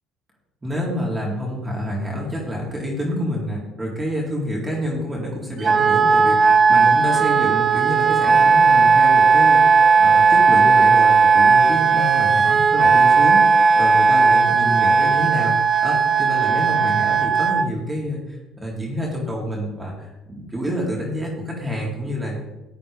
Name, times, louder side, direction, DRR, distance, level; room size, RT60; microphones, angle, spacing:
voice 1, 0.6-15.6 15.8-22.5, equal, 20° right, -3 dB, 3.9 m, -28 dB
Wind instrument woodwind instrument, 5.6-17.7, right 5 dB, 35° right, 0.7 m, -15 dB
14.5 x 8.5 x 3.8 m, 1.0 s
hypercardioid pair, 60°, 0 cm